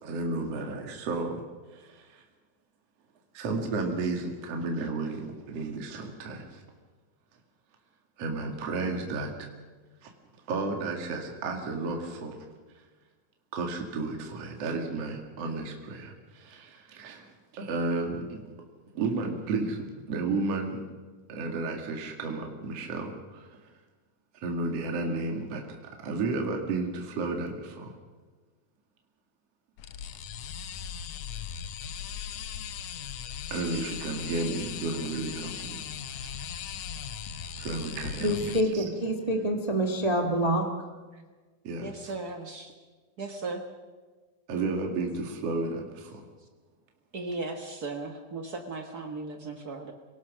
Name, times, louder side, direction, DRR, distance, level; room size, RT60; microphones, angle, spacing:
voice 1, 0.0-1.4 1.7-2.2 3.3-6.6 8.2-9.5 10.0-10.1 10.5-12.4 13.5-18.5 18.9-20.8 21.3-23.6 24.4-25.8 26.0-27.9 33.5-35.8 37.5-38.8 41.6-41.9 44.5-46.2, right 3 dB, 45° right, 2 dB, 2.9 m, -32 dB
sound 1, 29.8-38.6, left 8 dB, 75° left, 1.5 m, -38 dB
voice 2, 38.2-40.8, right 1 dB, 25° right, 3 dB, 0.7 m, -26 dB
voice 3, 41.8-42.7 43.2-43.6 47.1-49.9, right 3 dB, 90° right, 4 dB, 0.8 m, -37 dB
26.5 x 18.0 x 6.3 m, 1.4 s
omnidirectional pair, 4.2 m